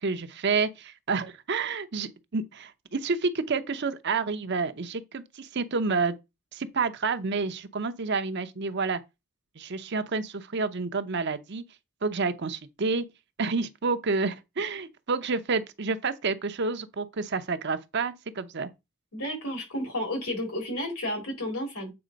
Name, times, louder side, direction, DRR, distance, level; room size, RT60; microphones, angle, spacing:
voice 1, 0.0-6.1 6.5-9.0 9.6-11.6 12.0-13.0 13.4-18.7, right 4 dB, 50° right, 0.7 m, -29 dB
voice 2, 19.1-21.9, left 1 dB, 80° left, 3.5 m, -32 dB
7.8 x 3.6 x 5.1 m
head